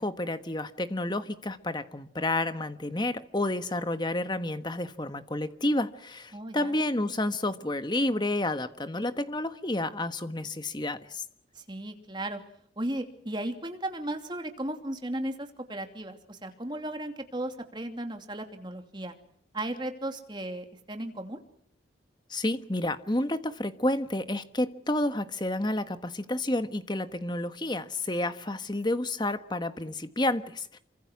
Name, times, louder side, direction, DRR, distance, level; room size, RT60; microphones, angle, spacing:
voice 1, 0.0-11.2 22.3-30.8, left 1 dB, 25° left, 1.3 m, -30 dB
voice 2, 6.3-6.7 11.5-12.4 12.8-19.1 19.5-21.4, right 1 dB, 25° right, 2.8 m, -35 dB
28.0 x 25.0 x 6.1 m
head